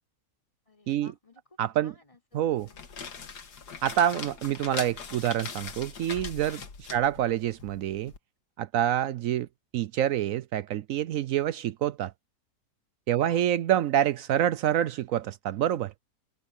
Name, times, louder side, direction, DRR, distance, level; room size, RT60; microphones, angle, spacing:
voice 1, 0.7-3.4 7.0-7.1 9.1-9.2 13.3-13.5, left 2 dB, 20° left, 4.5 m, -58 dB
voice 2, 1.6-1.9 2.3-2.7 3.8-8.1 8.6-9.5 9.7-12.1 13.1-15.9, right 11 dB, 70° right, 0.8 m, -27 dB
sound 1, 2.5-8.2, left 6 dB, 80° left, 2.3 m, -41 dB
omnidirectional pair, 1.7 m